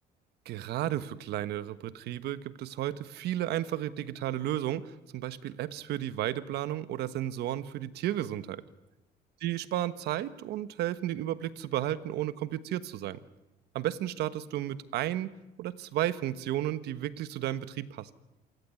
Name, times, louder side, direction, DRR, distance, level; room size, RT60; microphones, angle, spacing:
voice 1, 0.4-8.6 9.4-13.2 13.7-15.3 15.6-18.1, right 13 dB, 75° right, 14 dB, 1.3 m, -33 dB
27.5 x 16.5 x 9.7 m, 0.99 s
cardioid pair, 110°, 17 cm